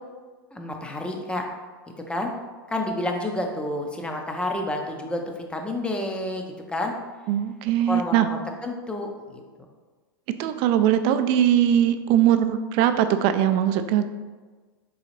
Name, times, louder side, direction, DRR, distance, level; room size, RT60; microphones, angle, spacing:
voice 1, 0.5-1.4 2.1-2.3 2.7-6.9 7.9-9.7, left 1 dB, 10° left, 3 dB, 0.5 m, -30 dB
voice 2, 7.3-8.3 10.3-14.0, right 10 dB, 45° right, 9 dB, 0.4 m, -21 dB
4.0 x 3.8 x 3.1 m, 1.4 s
hypercardioid pair, 105°, 13 cm